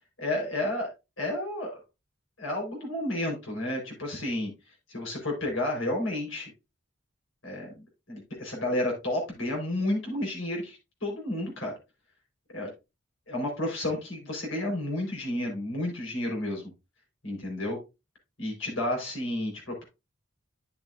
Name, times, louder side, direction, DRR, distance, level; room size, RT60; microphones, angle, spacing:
voice 1, 0.2-0.9 1.2-1.8 2.4-4.5 4.9-6.5 7.4-11.7 12.5-12.7 13.3-16.7 17.2-17.8 18.4-19.8, left 1 dB, 85° left, -1 dB, 4.5 m, -31 dB
10.5 x 7.1 x 2.6 m, 0.25 s
head